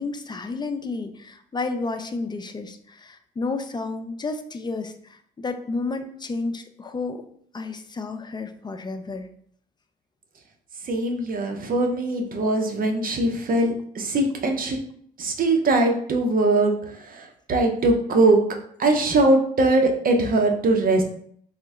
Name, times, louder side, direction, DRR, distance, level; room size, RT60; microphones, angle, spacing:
voice 1, 0.0-7.2 7.5-9.3, left 3 dB, 20° left, 7 dB, 0.4 m, -31 dB
voice 2, 10.8-14.8 15.2-18.4 18.8-21.0, right 2 dB, 45° right, 3 dB, 0.7 m, -21 dB
3.7 x 2.1 x 3.5 m, 0.63 s
cardioid pair, 90°, 20 cm